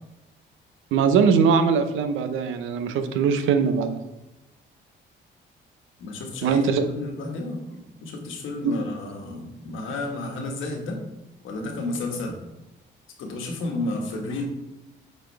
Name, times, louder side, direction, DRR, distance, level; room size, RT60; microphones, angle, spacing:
voice 1, 0.9-4.0 6.4-6.9 8.6-8.7, right 6 dB, 90° right, 8 dB, 0.8 m, -21 dB
voice 2, 6.0-6.6 6.9-11.0 11.4-12.4 13.2-14.4, left 2 dB, 80° left, 2 dB, 1.6 m, -31 dB
8.2 x 4.3 x 3.3 m, 0.99 s
cardioid pair, 90°, 20 cm